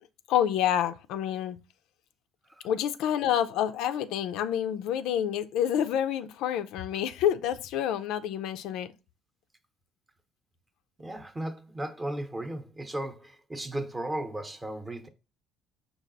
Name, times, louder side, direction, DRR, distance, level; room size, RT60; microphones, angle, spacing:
voice 1, 0.3-1.6 2.6-8.9, left 10 dB, 80° left, 0.3 m, -28 dB
voice 2, 11.0-15.1, right 1 dB, 15° right, 0.7 m, -35 dB
5.2 x 2.3 x 3.9 m
cardioid pair, 95°, 0 cm